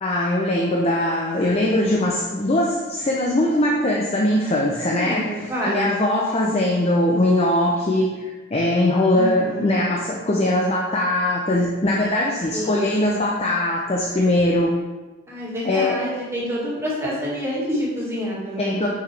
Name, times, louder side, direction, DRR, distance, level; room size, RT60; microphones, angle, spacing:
voice 1, 0.0-8.1 8.5-14.8 15.6-16.0 18.6-18.9, left 1 dB, 30° left, -2 dB, 0.6 m, -21 dB
voice 2, 4.8-5.9 9.1-9.7 12.5-12.9 15.3-18.9, equal, 15° right, -7 dB, 1.9 m, -27 dB
6.4 x 5.9 x 3.3 m, 1.2 s
head